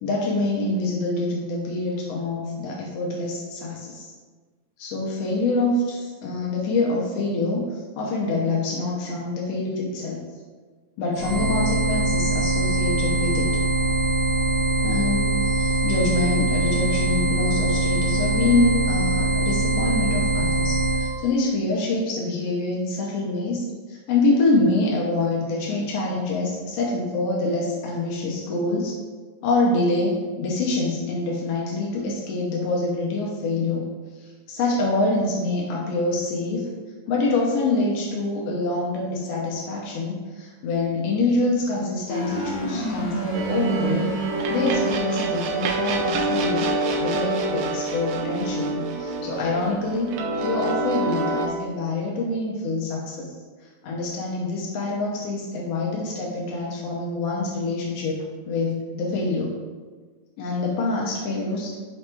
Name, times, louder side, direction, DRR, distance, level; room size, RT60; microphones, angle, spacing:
voice 1, 0.0-4.1 4.8-10.2 11.0-13.5 14.8-28.9 29.4-33.8 34.2-36.7 37.1-44.1 44.5-46.7 47.0-50.1 50.4-53.3 53.8-59.5 60.4-61.8, left 2 dB, 85° left, -3 dB, 1.4 m, -25 dB
sound 1, 11.1-21.1, right 2 dB, 55° right, 1.6 m, -22 dB
sound 2, 42.1-45.2, right 3 dB, 65° left, 1.9 m, -28 dB
sound 3, 43.3-51.5, right 2 dB, 80° right, 1.8 m, -27 dB
5.0 x 2.2 x 4.3 m, 1.4 s
omnidirectional pair, 3.5 m